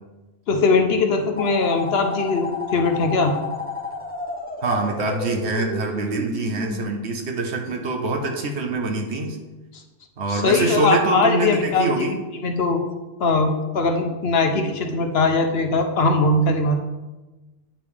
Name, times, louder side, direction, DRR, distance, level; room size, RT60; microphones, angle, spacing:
voice 1, 0.5-3.3 9.7-9.8 10.3-12.1 12.4-12.8 13.2-16.8, left 3 dB, 60° left, 5 dB, 0.9 m, -20 dB
sound 1, 1.4-6.8, left 3 dB, 15° left, 0.4 m, -31 dB
voice 2, 4.6-9.4 10.2-12.2, right 3 dB, 65° right, 3 dB, 1.2 m, -24 dB
8.8 x 5.2 x 3.3 m, 1.1 s
omnidirectional pair, 1.3 m